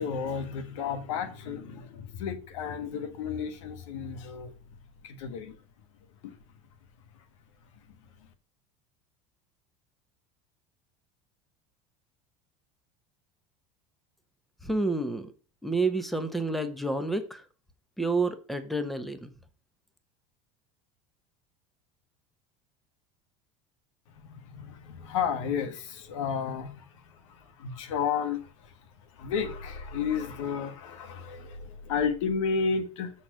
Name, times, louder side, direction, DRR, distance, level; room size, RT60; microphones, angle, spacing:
voice 1, 0.0-4.5 5.0-5.5 6.2-6.4 24.2-28.7 29.1-33.1, left 6 dB, 80° left, 1.4 m, -32 dB
voice 2, 14.6-15.3 15.6-17.4 18.0-19.3, right 2 dB, ahead, 1.1 m, -29 dB
7.8 x 4.2 x 6.3 m
supercardioid pair, 105°, 16 cm